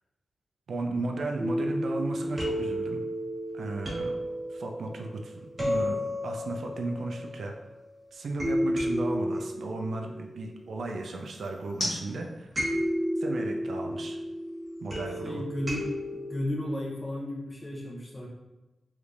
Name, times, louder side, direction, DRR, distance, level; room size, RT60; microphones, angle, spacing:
voice 1, 0.7-3.0 3.5-7.5 8.1-12.5 13.2-14.2 14.8-15.4, right 2 dB, 75° right, 2 dB, 0.4 m, -35 dB
sound 1, 1.4-7.8 8.4-11.4 12.6-16.4, equal, 35° right, 1.3 m, -32 dB
sound 2, 2.0-16.2, left 1 dB, 75° left, 0.9 m, -46 dB
voice 2, 15.2-18.3, left 1 dB, 20° left, -2 dB, 0.6 m, -34 dB
3.2 x 3.2 x 2.5 m, 1.1 s
wide cardioid pair, 170°, 0 cm